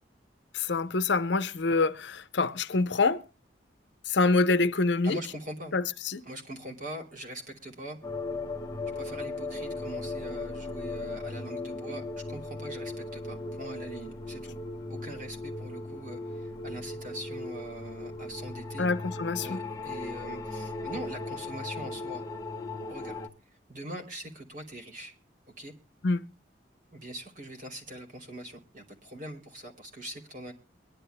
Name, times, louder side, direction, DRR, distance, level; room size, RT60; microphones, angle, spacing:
voice 1, 0.5-3.2 4.1-5.2 5.7-6.2 18.8-19.6 26.0-26.3, left 3 dB, 70° left, 0.7 m, -26 dB
voice 2, 5.0-5.8 6.2-8.0 8.8-14.6 14.9-18.9 19.4-22.3 22.9-25.1 25.6-25.7 26.9-30.5, right 1 dB, 45° right, 3.0 m, -42 dB
sound 1, 8.0-23.3, left 2 dB, 20° left, 1.0 m, -37 dB
23.0 x 11.5 x 2.2 m
head